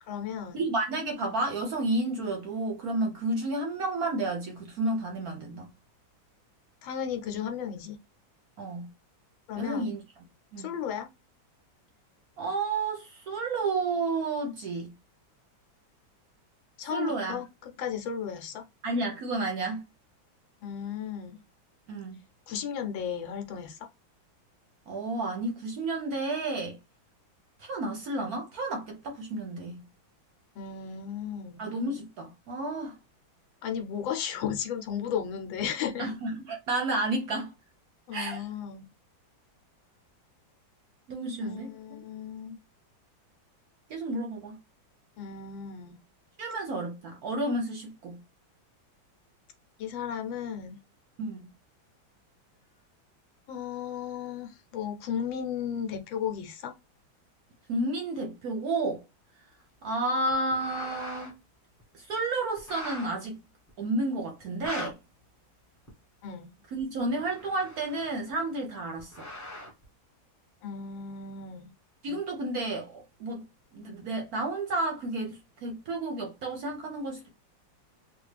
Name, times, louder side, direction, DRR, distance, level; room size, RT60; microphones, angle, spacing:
voice 1, 0.0-0.6 6.8-8.0 9.5-9.9 10.6-11.1 16.8-18.7 20.6-21.4 22.5-23.9 30.5-31.6 33.6-36.1 38.1-38.8 41.4-42.6 45.2-46.0 49.8-50.8 53.5-56.7 66.2-66.5 70.6-71.7, left 8 dB, 80° left, 1.4 m, -35 dB
voice 2, 0.5-5.7 8.6-8.9 9.6-10.0 10.5-10.7 12.4-14.9 16.9-17.4 18.8-19.8 21.9-22.2 24.9-26.8 27.6-29.8 31.6-33.0 36.0-37.5 38.1-38.4 41.1-41.7 43.9-44.6 46.4-48.2 51.2-51.5 57.7-59.0 59.8-61.4 61.9-63.4 63.8-65.0 66.7-69.3 72.0-73.4 73.7-77.3, right 2 dB, 65° right, 1.0 m, -31 dB
sound 1, 60.3-61.3 61.8-61.9 62.6-63.1 63.7-63.8 64.4-64.9 65.9-66.0 66.8-68.3 69.0-69.8, left 2 dB, 20° left, 0.5 m, -41 dB
3.5 x 2.3 x 3.2 m
omnidirectional pair, 2.1 m